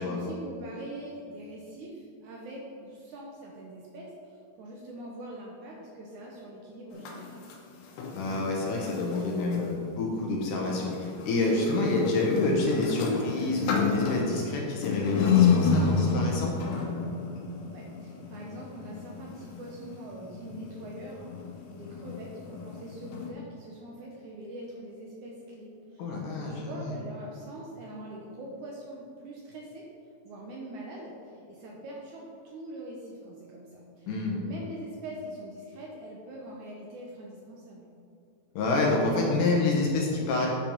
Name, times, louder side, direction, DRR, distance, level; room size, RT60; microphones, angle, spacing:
voice 1, 0.0-7.5 17.6-21.3 21.7-29.8 30.2-37.9, right 1 dB, 70° right, -2 dB, 2.0 m, -43 dB
sound 1, 6.9-9.7 10.6-23.3, left 5 dB, 85° left, 2.9 m, -30 dB
voice 2, 8.1-16.6 26.0-26.9 34.1-34.4 38.6-40.5, left 2 dB, 70° left, -2 dB, 2.3 m, -28 dB
8.7 x 5.8 x 5.1 m, 2.5 s
omnidirectional pair, 4.3 m